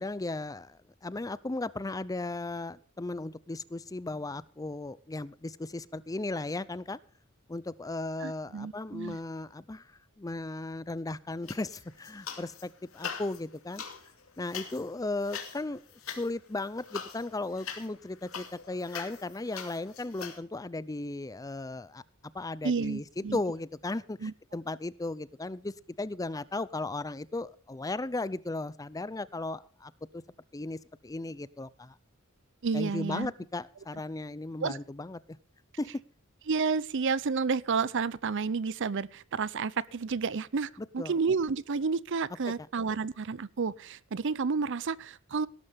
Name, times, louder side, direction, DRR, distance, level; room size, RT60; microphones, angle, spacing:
voice 1, 0.0-7.0 7.5-9.8 10.2-13.8 14.4-15.8 16.2-22.0 22.3-30.2 30.5-30.8 31.0-32.0 32.7-35.4 35.8-36.0 40.8-41.1, left 2 dB, 15° left, 18 dB, 0.5 m, -36 dB
voice 2, 8.2-9.2 22.6-23.4 24.2-24.3 32.6-33.3 34.6-34.8 36.5-45.5, right 5 dB, 60° right, 21 dB, 0.6 m, -30 dB
sound 1, 11.4-12.6 12.9-20.4, left 7 dB, 75° left, 2.6 m, -42 dB
18.0 x 12.0 x 3.5 m, 0.44 s
head